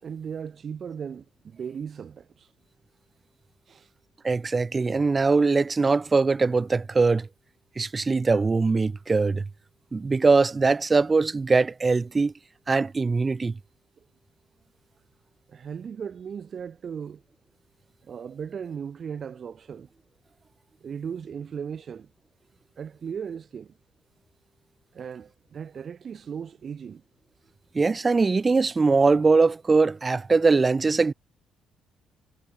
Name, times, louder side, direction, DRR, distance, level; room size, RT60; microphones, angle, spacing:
voice 1, 0.0-2.5 3.7-3.9 15.5-17.2 18.0-19.9 20.8-22.1 22.8-23.7 24.9-27.0, right 7 dB, 50° right, 3.0 m, -37 dB
voice 2, 4.2-7.3 7.8-9.4 9.9-12.3 12.7-13.6 27.7-31.1, right 4 dB, 30° right, 0.6 m, -22 dB
cardioid pair, 90°, 0 cm